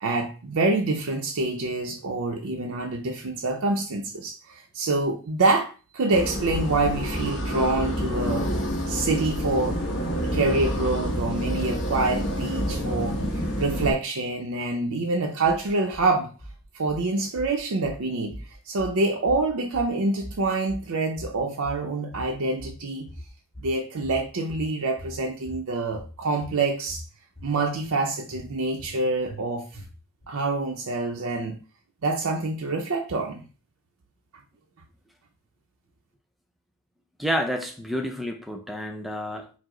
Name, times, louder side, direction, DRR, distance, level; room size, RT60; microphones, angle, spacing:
voice 1, 0.0-8.5 8.9-9.8 10.3-13.2 13.6-16.3 16.7-18.4 18.7-23.1 23.6-27.0 27.4-29.6 30.3-31.6 32.0-33.5, right 3 dB, 80° right, 0.6 m, -26 dB
sound 1, 6.1-13.9, equal, 55° left, 0.9 m, -28 dB
sound 2, 15.4-16.1 16.4-17.0 17.4-18.0 18.3-19.0 19.3-19.9 20.2-20.9 21.2-21.9 22.1-22.8 23.1-23.8 24.0-24.7 25.0-25.6 25.9-26.6 26.9-27.5 27.8-27.9 28.3-29.0 29.3-29.4 29.7-30.2, equal, 35° left, 1.8 m, -41 dB
voice 2, 37.2-39.5, equal, ahead, 0.4 m, -29 dB
4.8 x 2.0 x 3.7 m
head